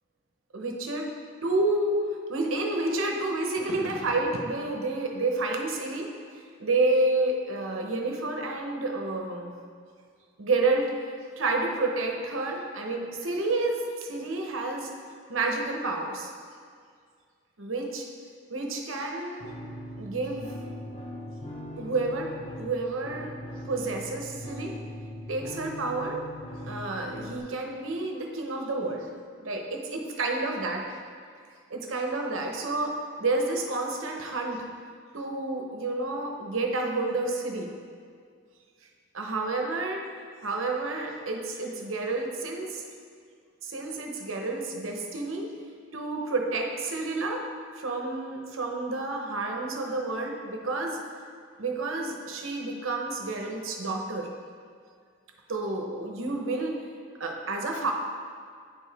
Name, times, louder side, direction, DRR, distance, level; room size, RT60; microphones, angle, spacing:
voice 1, 0.5-1.1 1.4-2.0 2.3-6.1 6.6-9.5 10.4-10.9 11.4-14.9 15.3-16.3 17.6-18.0 18.5-19.5 20.0-20.5 21.8-22.3 22.6-23.3 23.7-24.8 25.3-26.2 26.6-29.1 29.4-30.8 31.7-34.6 35.1-37.7 39.1-40.0 40.4-42.8 43.6-45.5 45.9-47.4 47.7-51.0 51.6-54.3 55.5-56.8 57.2-57.9, right 2 dB, 90° right, 1 dB, 0.9 m, -29 dB
sound 1, 19.4-27.4, left 1 dB, 30° left, 0.7 m, -40 dB
9.2 x 4.7 x 3.4 m, 2.1 s
head